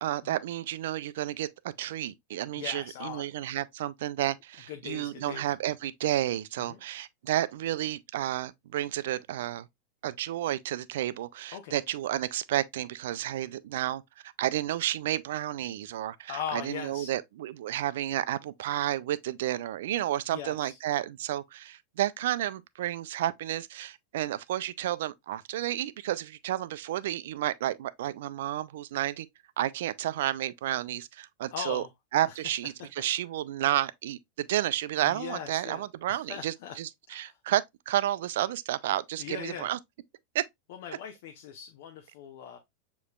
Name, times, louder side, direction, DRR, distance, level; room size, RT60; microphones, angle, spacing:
voice 1, 0.0-1.5 1.8-9.7 10.0-29.3 29.6-31.8 32.1-39.8 40.3-40.4, right 13 dB, 70° right, 0.3 m, -31 dB
voice 2, 2.6-3.3 4.7-5.5 6.6-6.8 11.5-11.8 16.3-17.1 20.3-20.8 31.5-31.9 32.3-32.4 35.0-36.8 37.1-37.4 39.2-39.7 40.7-42.6, left 8 dB, 65° left, 0.7 m, -40 dB
6.6 x 3.0 x 2.3 m
hypercardioid pair, 100°, 0 cm